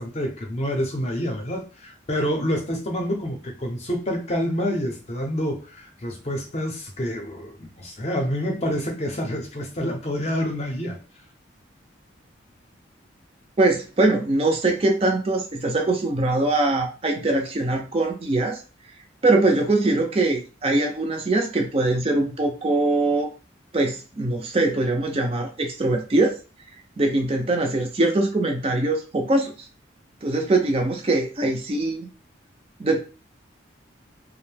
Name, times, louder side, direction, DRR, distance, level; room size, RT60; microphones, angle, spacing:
voice 1, 0.0-11.0, equal, 35° left, 2 dB, 0.5 m, -27 dB
voice 2, 13.6-18.6 19.2-23.3 23.7-26.4 27.0-29.5 30.2-32.1 32.8-33.0, right 2 dB, 30° right, 2 dB, 0.4 m, -22 dB
2.6 x 2.0 x 3.2 m, 0.33 s
head